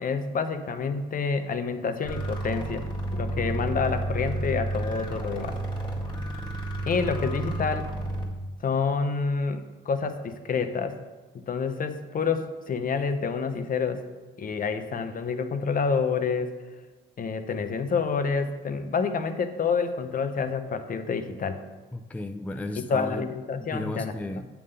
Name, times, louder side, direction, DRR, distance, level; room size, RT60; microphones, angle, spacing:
voice 1, 0.0-2.8 3.1-5.5 6.9-7.9 8.6-10.9 11.5-14.0 14.4-16.6 17.2-21.6 22.8-24.1, left 5 dB, 45° left, 9 dB, 0.7 m, -28 dB
sound 1, 2.0-8.3, right 1 dB, 25° left, 1.9 m, -31 dB
voice 2, 21.9-23.3 23.6-24.5, left 1 dB, 5° left, 6 dB, 0.4 m, -34 dB
8.4 x 3.7 x 6.6 m, 1.3 s
cardioid pair, 90°, 20 cm